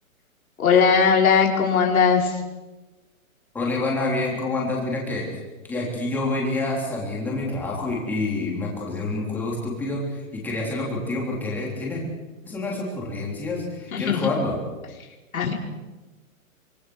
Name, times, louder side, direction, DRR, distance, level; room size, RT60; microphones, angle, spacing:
voice 1, 0.6-2.4 13.9-14.3 15.3-15.5, left 6 dB, 75° left, 0 dB, 5.2 m, -19 dB
voice 2, 3.5-5.3 5.7-12.0 12.4-14.6, left 2 dB, 5° left, -3 dB, 3.6 m, -27 dB
24.5 x 24.5 x 6.3 m, 1.2 s
hypercardioid pair, 180°, 42 cm